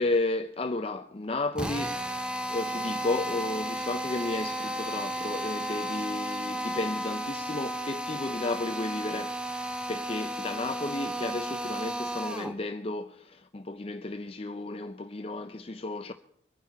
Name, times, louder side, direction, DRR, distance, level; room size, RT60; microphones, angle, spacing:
voice 1, 0.0-16.1, left 2 dB, 30° left, 0.5 m, -33 dB
Drill, 1.6-12.6, equal, 5° right, 0.8 m, -33 dB
23.5 x 9.2 x 4.7 m
head